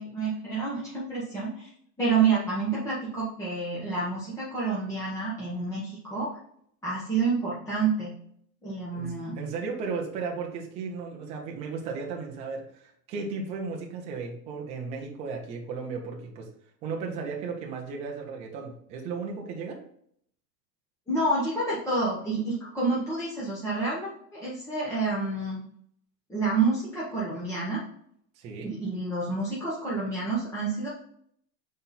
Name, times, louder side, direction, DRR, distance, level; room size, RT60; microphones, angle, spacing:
voice 1, 0.0-1.7 2.0-6.4 6.8-8.1 8.6-9.4 21.1-25.6 26.3-27.8 28.6-30.9, right 3 dB, 5° left, -8 dB, 0.9 m, -28 dB
voice 2, 8.9-16.5 16.8-19.8 28.4-28.7, right 4 dB, 15° right, 1 dB, 0.4 m, -35 dB
5.6 x 4.2 x 4.0 m, 0.67 s
supercardioid pair, 155°, 49 cm